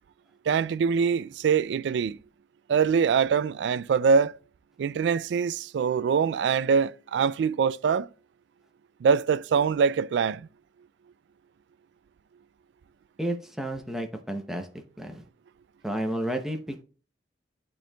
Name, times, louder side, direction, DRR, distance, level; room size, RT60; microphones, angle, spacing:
voice 1, 0.5-2.2 2.7-4.3 4.8-8.1 9.0-10.5, right 6 dB, 70° right, 0.3 m, -24 dB
voice 2, 13.2-14.7 15.0-15.2 15.8-16.8, right 1 dB, ahead, 0.6 m, -31 dB
11.5 x 4.5 x 2.3 m
head